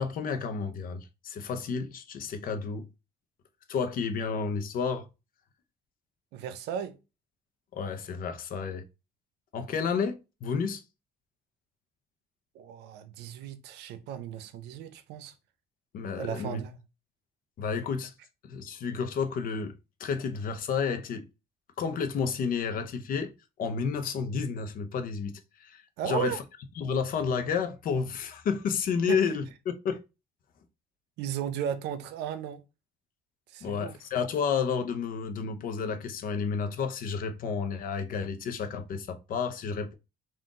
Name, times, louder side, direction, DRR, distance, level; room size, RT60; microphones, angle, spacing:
voice 1, 0.0-2.9 3.7-5.1 7.7-8.8 9.5-10.8 15.9-16.6 17.6-18.1 18.4-19.7 20.0-21.3 21.8-23.3 23.6-25.3 25.6-26.4 26.8-30.0 33.6-39.9, left 6 dB, 55° left, 0.7 m, -31 dB
voice 2, 6.3-6.9 12.5-15.3 16.1-16.8 26.0-26.4 29.1-29.2 31.2-32.6 33.5-34.0, right 9 dB, 85° right, 0.6 m, -35 dB
3.8 x 2.5 x 3.7 m
cardioid pair, 110°, 17 cm